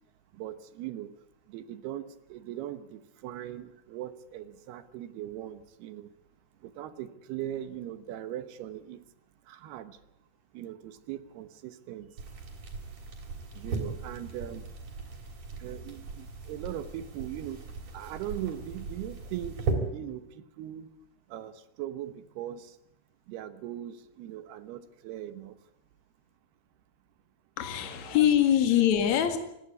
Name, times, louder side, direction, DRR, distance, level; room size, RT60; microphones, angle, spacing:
voice 1, 0.3-1.1 1.5-6.1 6.6-9.0 9.5-10.0 10.5-12.1 13.6-14.7 15.6-17.6 17.9-19.6 19.9-20.9 21.3-22.7 23.3-25.5 27.8-28.3, right 12 dB, 75° right, 12 dB, 3.0 m, -40 dB
sound 1, 12.2-19.7, right 4 dB, 45° right, 4.6 m, -38 dB
voice 2, 27.6-29.4, left 10 dB, 50° left, 7 dB, 2.9 m, -23 dB
26.0 x 11.5 x 9.5 m, 0.80 s
omnidirectional pair, 4.8 m